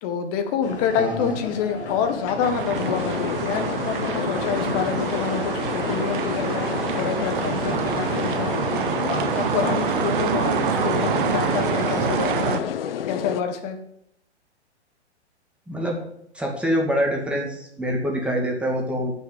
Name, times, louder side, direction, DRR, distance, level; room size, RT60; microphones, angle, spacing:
voice 1, 0.0-8.9 9.5-12.6 13.1-13.8, left 7 dB, 35° left, 7 dB, 1.7 m, -27 dB
sound 1, 0.6-12.7, left 4 dB, 75° left, 1.8 m, -34 dB
voice 2, 1.0-1.4 15.7-16.0 16.3-19.1, equal, 5° right, -1 dB, 2.1 m, -25 dB
sound 2, 2.4-12.6, right 10 dB, 50° right, 0.8 m, -27 dB
sound 3, 2.7-13.4, left 9 dB, 55° left, 0.8 m, -30 dB
9.6 x 6.2 x 8.3 m, 0.74 s
figure-of-eight pair, 120°, 34 cm